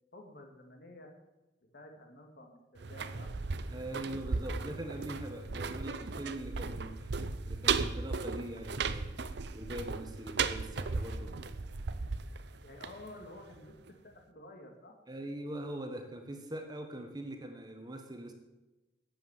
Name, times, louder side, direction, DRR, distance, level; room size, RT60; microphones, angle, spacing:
voice 1, 0.1-1.1 1.7-3.3 12.6-13.7 14.0-15.0, left 1 dB, 55° left, 3 dB, 2.2 m, -51 dB
sound 1, 2.8-13.6 13.9-14.0, right 4 dB, 60° right, 0.7 m, -36 dB
voice 2, 3.7-7.1 7.5-9.1 9.5-11.3 15.1-18.3, right 1 dB, 20° right, 5 dB, 1.4 m, -42 dB
12.5 x 8.5 x 7.3 m, 1.1 s
head